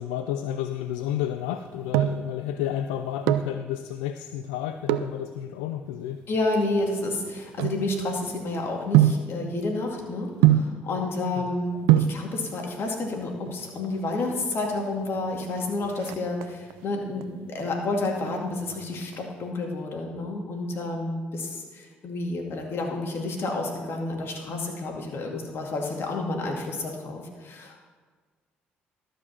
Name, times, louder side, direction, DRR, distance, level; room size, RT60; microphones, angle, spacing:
voice 1, 0.0-6.2 11.3-11.6 11.8-11.9 24.5-24.7 25.3-25.5, left 11 dB, 85° left, 8 dB, 0.4 m, -31 dB
sound 1, 1.5-2.3 3.1-3.6 4.8-5.2 5.9-8.3 8.9-9.3 10.4-10.8 11.6-11.7 11.9-12.2 13.4-13.9 14.2-14.3 14.5-14.7 15.0-15.4 15.7-16.8 17.2-17.6 18.0-19.2 19.4-19.5, right 12 dB, 80° right, 0.4 m, -23 dB
voice 2, 6.3-27.8, left 2 dB, 55° left, 1 dB, 2.3 m, -30 dB
12.5 x 5.1 x 7.2 m, 1.4 s
hypercardioid pair, 55°, 5 cm